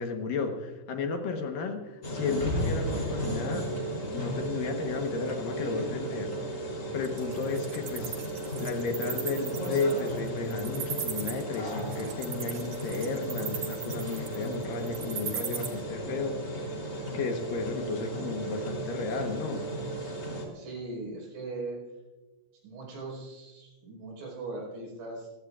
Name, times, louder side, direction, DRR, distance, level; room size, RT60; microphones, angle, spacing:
voice 1, 0.0-3.6 4.1-6.3 6.9-8.2 8.6-16.8 17.1-19.7, left 4 dB, 65° left, 4 dB, 2.3 m, -33 dB
sound 1, 2.0-20.5, right 1 dB, 20° left, 3.1 m, -35 dB
Wild animals, 7.0-15.7, right 7 dB, 55° right, 2.0 m, -37 dB
voice 2, 20.5-21.8 22.6-25.3, right 3 dB, 85° right, -1 dB, 7.4 m, -39 dB
27.5 x 16.0 x 2.5 m, 1.2 s
omnidirectional pair, 5.4 m